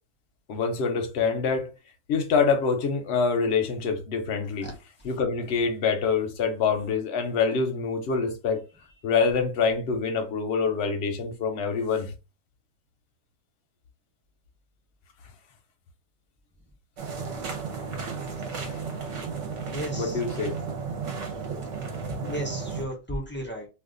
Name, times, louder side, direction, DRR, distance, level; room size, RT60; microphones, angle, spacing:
voice 1, 0.5-1.7 2.1-4.7 5.0-8.6 9.0-12.1 18.6-18.8 19.9-20.6, left 5 dB, 55° left, 0.8 m, -25 dB
sound 1, 17.0-22.8, right 5 dB, 60° right, 1.0 m, -33 dB
voice 2, 19.7-20.2 22.2-23.7, equal, 15° left, 0.4 m, -34 dB
2.5 x 2.4 x 3.7 m
omnidirectional pair, 1.7 m